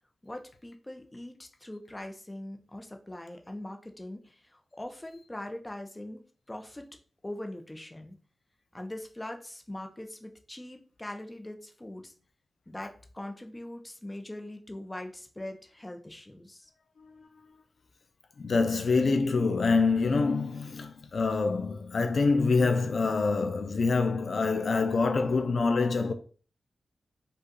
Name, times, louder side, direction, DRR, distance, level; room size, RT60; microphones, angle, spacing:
voice 1, 0.2-6.2 6.5-7.0 7.2-8.2 8.7-12.1 12.7-16.7, left 1 dB, 15° left, 0.7 m, -42 dB
voice 2, 18.4-26.1, left 4 dB, 60° left, 0.5 m, -26 dB
5.3 x 2.4 x 3.9 m
wide cardioid pair, 100°, 0 cm